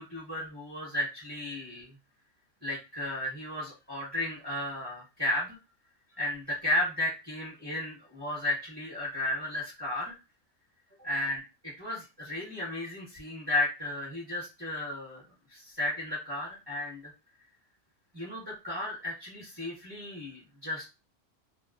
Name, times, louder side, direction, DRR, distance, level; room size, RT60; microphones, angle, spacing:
voice 1, 0.0-1.9 2.6-5.6 6.1-10.1 11.0-15.2 15.5-17.1 18.1-20.9, left 1 dB, 20° right, -5 dB, 0.8 m, -34 dB
2.4 x 2.2 x 2.3 m, 0.27 s
omnidirectional pair, 1.4 m